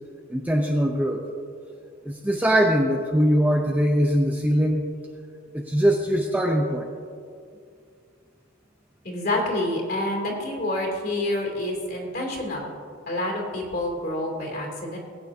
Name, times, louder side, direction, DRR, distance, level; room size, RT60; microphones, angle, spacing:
voice 1, 0.3-1.3 2.0-4.8 5.5-6.9, equal, 5° right, 1 dB, 0.6 m, -22 dB
voice 2, 9.0-12.7 13.1-15.0, left 1 dB, 45° left, -1 dB, 2.7 m, -28 dB
19.5 x 9.4 x 2.7 m, 2.3 s
head